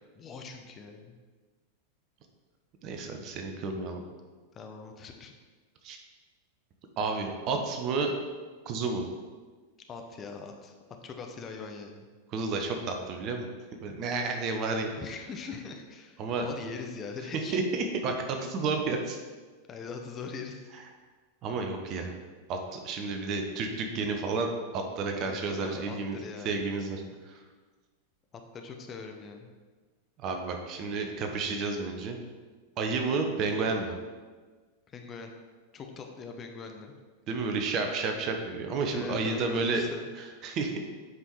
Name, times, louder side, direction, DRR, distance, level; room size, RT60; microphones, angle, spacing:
voice 1, 0.1-1.2 4.5-5.3 9.9-10.7 11.0-12.1 15.0-17.6 19.7-20.7 25.2-26.6 28.5-29.5 34.9-35.3 35.7-36.9 38.9-40.1, left 5 dB, 25° left, 4 dB, 0.9 m, -42 dB
voice 2, 2.8-4.0 5.8-6.0 7.0-8.1 8.7-9.0 12.3-13.5 13.8-14.9 16.2-16.4 17.5-19.2 21.4-22.1 22.5-26.2 26.4-27.0 30.2-32.2 32.8-33.9 37.3-39.8 40.2-40.8, right 4 dB, 35° right, 4 dB, 1.1 m, -31 dB
8.0 x 5.6 x 4.7 m, 1.4 s
figure-of-eight pair, 90°, 0 cm